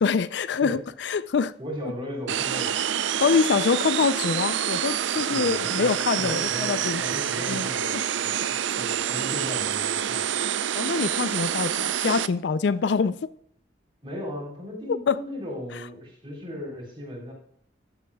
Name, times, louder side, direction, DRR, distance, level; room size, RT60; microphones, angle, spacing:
voice 1, 0.0-1.5 3.2-7.0 7.5-8.0 10.7-13.2 15.1-15.2, left 5 dB, 65° left, 0.4 m, -25 dB
voice 2, 1.6-2.8 5.2-8.3 8.6-10.3 14.0-17.3, left 1 dB, 25° right, 3.7 m, -36 dB
sound 1, 2.3-12.3, right 9 dB, 75° right, 0.4 m, -27 dB
14.0 x 7.9 x 2.2 m
head